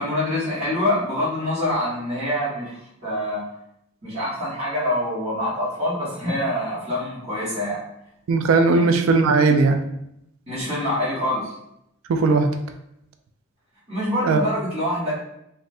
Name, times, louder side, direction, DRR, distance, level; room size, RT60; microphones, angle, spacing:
voice 1, 0.0-3.4 4.0-7.8 8.7-8.9 10.5-11.5 13.9-15.1, left 1 dB, 30° right, -12 dB, 1.2 m, -25 dB
voice 2, 8.3-9.8 12.1-12.5 14.2-14.5, right 4 dB, 70° right, 6 dB, 0.3 m, -18 dB
3.2 x 2.5 x 2.6 m, 0.79 s
head